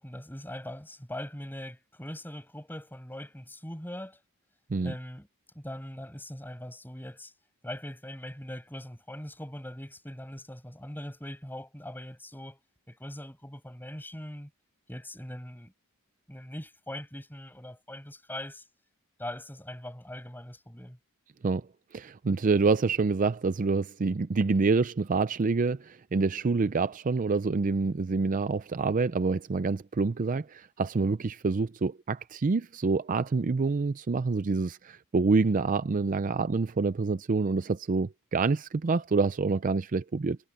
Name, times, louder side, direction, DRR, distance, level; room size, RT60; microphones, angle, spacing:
voice 1, 0.0-4.2 4.8-5.3 5.5-7.3 7.6-12.6 12.9-14.5 14.9-15.7 16.3-18.7 19.2-21.0, left 1 dB, 10° left, 6.2 m, -41 dB
voice 2, 21.9-40.4, right 4 dB, 40° right, 0.4 m, -27 dB
head